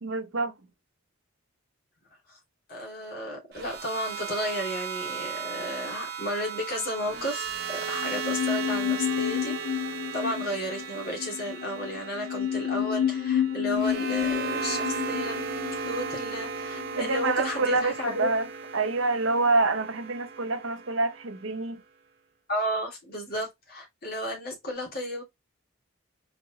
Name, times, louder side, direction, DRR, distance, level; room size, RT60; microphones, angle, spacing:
voice 1, 0.0-0.5 16.9-18.5 18.7-21.8, right 3 dB, 70° right, 0.8 m, -27 dB
voice 2, 2.7-18.3 22.5-25.2, equal, 45° left, 2.2 m, -33 dB
sound 1, 3.5-21.7, right 5 dB, 50° right, 1.0 m, -36 dB
sound 2, 8.0-17.3 17.6-17.7, left 9 dB, 80° left, 1.4 m, -31 dB
4.2 x 4.1 x 2.8 m
head